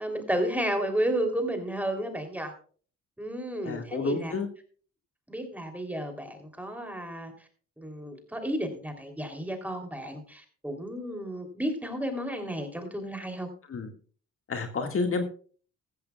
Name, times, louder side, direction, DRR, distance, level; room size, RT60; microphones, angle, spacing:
voice 1, 0.0-2.5 3.2-4.3 5.3-7.3 7.8-13.5, right 1 dB, 5° right, 5 dB, 3.1 m, -32 dB
voice 2, 3.6-4.5 13.7-13.9 14.5-15.2, left 4 dB, 45° left, 5 dB, 1.9 m, -30 dB
15.0 x 14.0 x 2.3 m, 0.42 s
cardioid pair, 90°, 30 cm